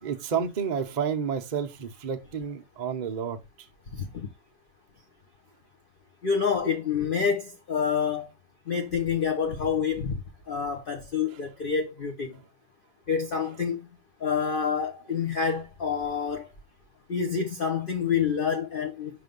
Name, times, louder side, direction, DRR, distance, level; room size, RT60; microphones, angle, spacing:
voice 1, 0.0-3.4, right 7 dB, 50° right, 0.5 m, -30 dB
voice 2, 6.2-8.3 8.7-10.2 10.5-12.3 13.1-13.8 14.2-16.5 17.1-19.1, left 6 dB, 40° left, 0.8 m, -27 dB
5.8 x 3.4 x 5.2 m
omnidirectional pair, 1.8 m